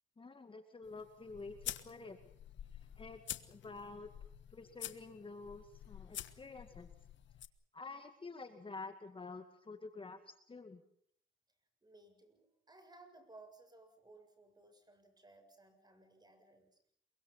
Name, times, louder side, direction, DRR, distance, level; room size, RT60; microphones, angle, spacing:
voice 1, 0.2-2.2 2.7-3.2 3.5-4.1 4.5-6.9 7.7-10.2 10.5-10.8, left 3 dB, 25° left, 7 dB, 2.2 m, -49 dB
sound 1, 0.8-7.5, left 11 dB, 70° left, 1.4 m, -48 dB
voice 2, 11.8-16.8, right 2 dB, 20° right, 7 dB, 7.4 m, -60 dB
28.0 x 24.0 x 5.8 m, 0.65 s
cardioid pair, 90°, 20 cm